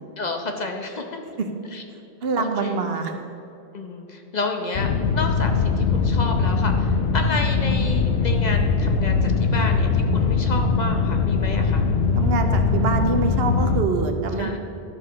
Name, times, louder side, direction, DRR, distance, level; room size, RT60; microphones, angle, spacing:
voice 1, 0.2-1.2 1.7-1.8 2.4-2.8 3.7-11.9 14.4-14.6, left 3 dB, 45° left, 3 dB, 0.9 m, -30 dB
voice 2, 2.2-3.1 12.2-14.5, right 4 dB, 75° right, 6 dB, 1.0 m, -25 dB
sound 1, 4.7-13.8, left 4 dB, 80° left, 0.9 m, -21 dB
11.5 x 4.9 x 6.1 m, 2.8 s
omnidirectional pair, 1.0 m